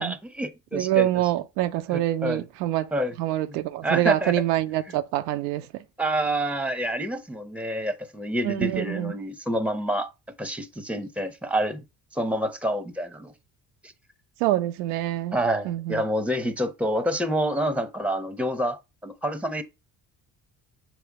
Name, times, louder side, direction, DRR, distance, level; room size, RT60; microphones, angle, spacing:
voice 1, 0.0-1.3 1.9-2.5 2.9-3.2 3.5-3.6 3.8-4.3 4.9-5.0 6.0-10.1 10.4-11.8 12.1-13.3 13.8-13.9 15.3-19.6, right 1 dB, 5° right, 1.0 m, -28 dB
voice 2, 0.7-2.9 3.2-5.6 8.4-9.1 14.4-15.4 15.7-16.0, right 14 dB, 80° right, 0.6 m, -25 dB
7.0 x 3.2 x 4.7 m
hypercardioid pair, 50°, 47 cm